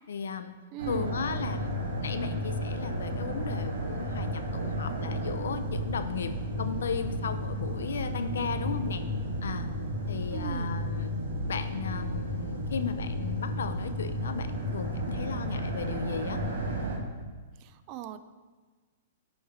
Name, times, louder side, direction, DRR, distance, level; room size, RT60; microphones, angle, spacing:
voice 1, 0.1-0.6 0.9-1.7 2.0-9.0 9.4-9.7 10.1-11.1 11.5-16.4, left 6 dB, 75° left, 9 dB, 0.4 m, -35 dB
voice 2, 0.7-1.2 10.3-10.8 17.6-18.2, right 11 dB, 40° right, 11 dB, 0.4 m, -39 dB
sound 1, 0.8-17.0, equal, 75° right, 1.1 m, -33 dB
8.5 x 3.2 x 4.3 m, 1.4 s
hypercardioid pair, 115°, 0 cm